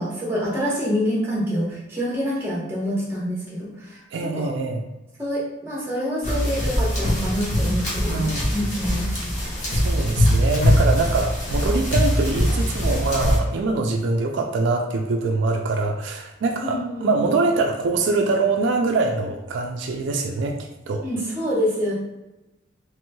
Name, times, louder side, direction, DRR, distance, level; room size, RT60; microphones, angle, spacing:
voice 1, 0.0-4.5 5.2-9.0 16.6-17.1 21.0-21.9, equal, 10° right, -6 dB, 0.9 m, -26 dB
voice 2, 4.1-4.8 8.1-8.6 9.7-21.0, right 3 dB, 75° right, 3 dB, 0.3 m, -24 dB
sound 1, 6.2-13.4, equal, 40° left, 1.0 m, -22 dB
3.0 x 3.0 x 2.2 m, 0.97 s
head